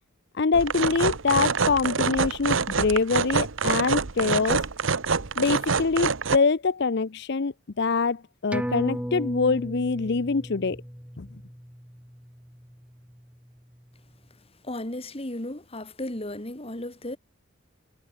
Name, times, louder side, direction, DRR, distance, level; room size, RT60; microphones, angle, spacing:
voice 1, 0.3-4.6 5.4-10.8 11.2-11.3, left 4 dB, 60° left, 0.6 m, -24 dB
sound 1, 0.5-6.4, right 5 dB, 75° right, 1.1 m, -26 dB
sound 2, 8.5-13.5 13.8-13.9, equal, 5° right, 6.3 m, -36 dB
voice 2, 14.6-17.2, left 1 dB, 30° left, 2.3 m, -34 dB
head